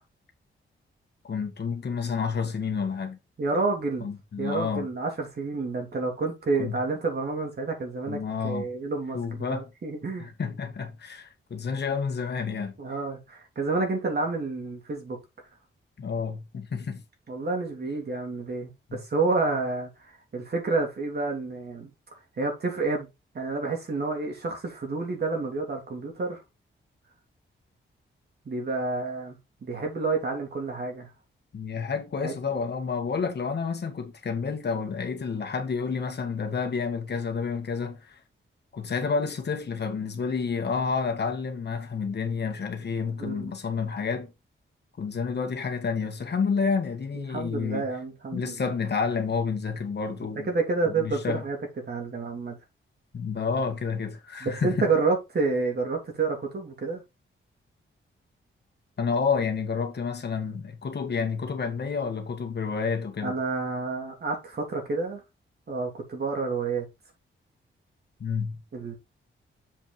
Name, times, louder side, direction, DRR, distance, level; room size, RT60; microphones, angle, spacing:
voice 1, 1.2-3.2 4.0-4.9 6.6-6.8 8.1-8.7 9.1-9.7 10.2-12.7 16.0-17.0 18.9-19.0 31.5-38.2 38.7-44.3 45.0-47.9 48.3-50.5 50.8-51.4 53.1-54.9 59.0-63.3 68.2-68.6, left 5 dB, 55° left, 1.7 m, -29 dB
voice 2, 3.4-4.1 4.4-10.3 12.8-15.2 17.3-21.9 22.4-23.1 23.3-26.4 28.4-31.1 32.2-32.3 43.2-43.5 47.1-48.7 50.5-51.6 51.8-52.6 54.4-57.0 63.2-65.2 65.7-66.9 68.7-68.9, right 3 dB, 50° right, 3.0 m, -29 dB
7.4 x 4.6 x 4.4 m
wide cardioid pair, 115°, 21 cm